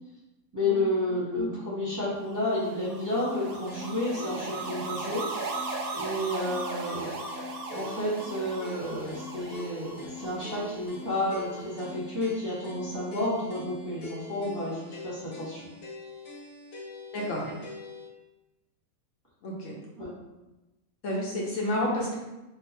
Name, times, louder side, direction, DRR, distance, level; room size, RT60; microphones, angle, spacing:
voice 1, 0.5-5.3 6.0-7.1 7.7-15.6 20.0-20.1, left 1 dB, 15° right, -9 dB, 0.9 m, -31 dB
sound 1, 2.3-11.6, right 3 dB, 65° right, 0.6 m, -38 dB
sound 2, 3.7-18.1, left 2 dB, 90° left, 1.2 m, -43 dB
voice 2, 17.1-17.5 19.4-19.8 21.0-22.2, left 1 dB, 70° left, -3 dB, 1.0 m, -30 dB
2.6 x 2.4 x 4.1 m, 1.0 s
omnidirectional pair, 1.5 m